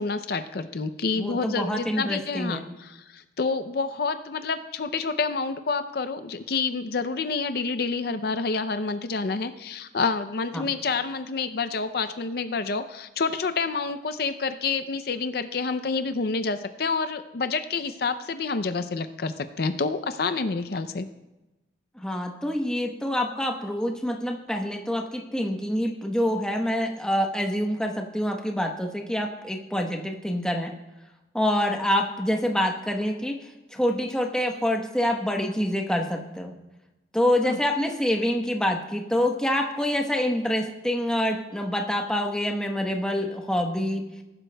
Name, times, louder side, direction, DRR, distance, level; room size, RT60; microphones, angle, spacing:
voice 1, 0.0-21.1 37.5-37.6, left 4 dB, 55° left, 10 dB, 0.5 m, -28 dB
voice 2, 1.2-2.6 10.5-10.7 22.0-30.7 31.3-33.4 33.7-36.5 37.1-44.0, equal, 5° left, 2 dB, 1.0 m, -26 dB
19.5 x 12.0 x 2.3 m, 1.0 s
head